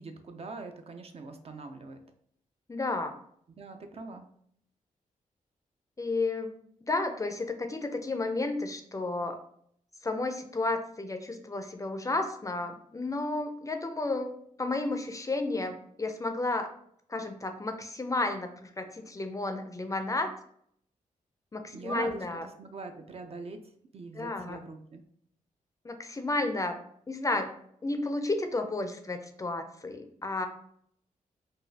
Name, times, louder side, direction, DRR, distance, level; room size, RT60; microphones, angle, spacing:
voice 1, 0.0-2.0 3.5-4.3 21.7-22.2 22.6-23.6 23.9-25.0, right 3 dB, 45° right, 6 dB, 0.5 m, -42 dB
voice 2, 2.7-3.2 6.0-6.5 6.8-9.4 10.0-16.7 17.1-20.3 21.5-22.5 24.2-24.6 25.8-26.7 27.1-27.5 27.8-30.5, left 2 dB, 25° left, 6 dB, 0.4 m, -32 dB
4.8 x 2.3 x 2.7 m, 0.67 s
wide cardioid pair, 100°, 14 cm